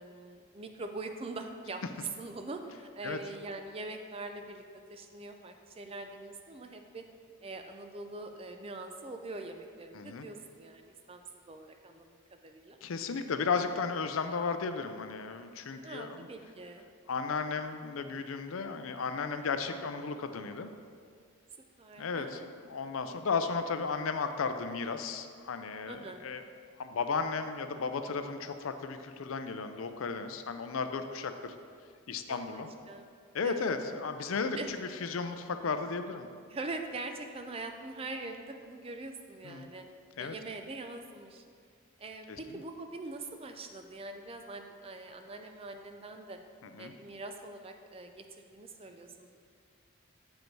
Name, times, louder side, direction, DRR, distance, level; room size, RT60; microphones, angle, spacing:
voice 1, 0.0-1.8 2.2-4.6 4.9-7.0 7.4-11.2 11.5-12.8 15.8-16.9 21.8-22.5 25.9-26.3 32.3-33.0 33.4-33.7 34.6-34.7 36.5-39.8 40.2-41.4 42.0-46.4 46.8-49.4, right 2 dB, 25° right, 6 dB, 0.4 m, -43 dB
voice 2, 9.9-10.2 12.8-16.3 17.1-20.7 22.0-26.4 26.8-31.6 32.1-32.7 33.3-36.3 39.4-39.7 40.2-40.3 42.3-42.4 46.6-46.9, left 5 dB, 75° left, 8 dB, 0.5 m, -34 dB
7.4 x 5.2 x 4.6 m, 2.1 s
head